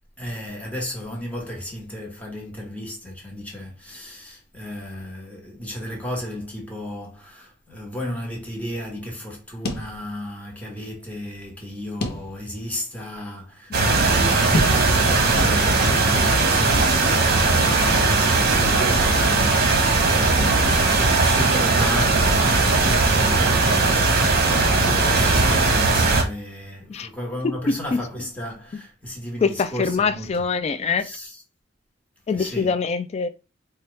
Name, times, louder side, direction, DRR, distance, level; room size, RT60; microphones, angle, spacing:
voice 1, 0.2-30.4 31.0-31.4 32.3-32.7, left 1 dB, 10° left, 1.2 m, -34 dB
sound 1, 9.6-10.5 10.8-10.9 12.0-12.7 13.2-13.3 14.5-15.1 15.4-16.0, left 1 dB, 55° left, 0.7 m, -28 dB
sound 2, 13.7-26.2, right 3 dB, 55° right, 0.9 m, -19 dB
voice 2, 27.4-28.0 29.4-31.1 32.3-33.3, left 4 dB, 35° left, 0.3 m, -24 dB
4.4 x 2.3 x 3.1 m
head